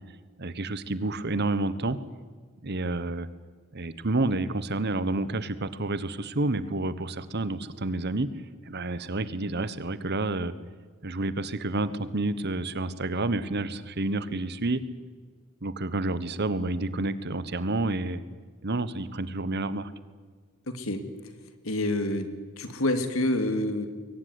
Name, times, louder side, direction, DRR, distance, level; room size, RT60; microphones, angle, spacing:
voice 1, 0.4-2.0 2.6-3.3 3.7-8.3 8.6-10.5 11.0-14.8 15.6-18.2 18.6-19.9, right 2 dB, 55° right, 14 dB, 1.3 m, -29 dB
voice 2, 20.7-21.1 21.6-22.3 22.6-23.9, left 1 dB, 90° left, 9 dB, 2.5 m, -27 dB
22.0 x 18.0 x 9.6 m, 1.5 s
head